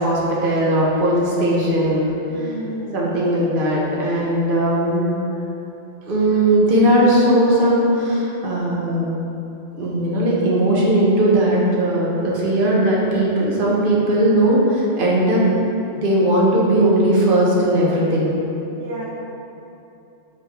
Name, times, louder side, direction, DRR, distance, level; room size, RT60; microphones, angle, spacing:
voice 1, 0.0-2.1 2.9-5.1 6.1-9.1 9.8-15.4 16.0-18.4, right 1 dB, 45° right, -5 dB, 1.2 m, -18 dB
voice 2, 2.3-3.1 5.3-5.5 18.7-19.1, right 1 dB, 75° right, -5 dB, 1.2 m, -32 dB
6.6 x 4.0 x 4.3 m, 2.9 s
omnidirectional pair, 1.3 m